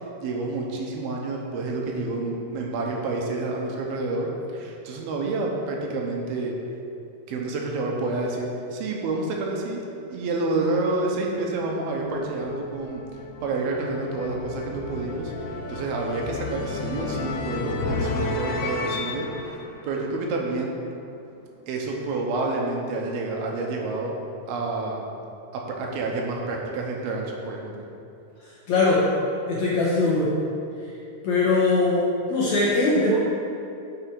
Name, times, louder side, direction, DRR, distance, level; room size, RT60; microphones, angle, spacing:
voice 1, 0.2-6.5 7.3-13.0 13.4-15.3 15.7-19.6 19.8-20.7 21.7-24.1 24.5-25.0 25.5-27.7, right 2 dB, 75° right, -1 dB, 2.8 m, -28 dB
sound 1, 11.7-20.7, left 3 dB, 85° left, 1.7 m, -33 dB
voice 2, 28.4-29.1 29.5-30.4 31.2-33.2, left 2 dB, 65° left, -6 dB, 1.9 m, -21 dB
8.7 x 6.8 x 4.6 m, 2.7 s
omnidirectional pair, 4.5 m